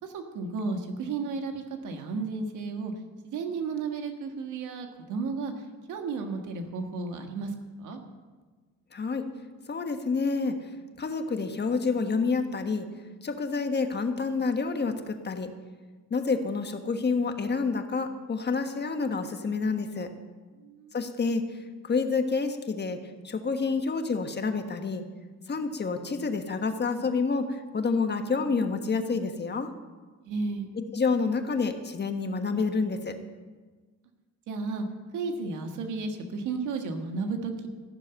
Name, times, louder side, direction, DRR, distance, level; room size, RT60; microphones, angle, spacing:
voice 1, 0.0-2.9 3.2-5.5 5.9-8.0 20.6-21.0 30.2-30.7 34.5-34.8 35.1-37.7, right 4 dB, 85° right, 5 dB, 1.7 m, -33 dB
voice 2, 8.9-9.3 9.7-10.6 11.0-12.9 13.2-15.5 16.1-20.1 20.9-21.6 21.8-23.0 23.2-25.0 25.5-29.7 30.8-33.2, left 4 dB, 35° left, 7 dB, 1.4 m, -28 dB
14.5 x 7.0 x 9.0 m, 1.4 s
cardioid pair, 90°, 30 cm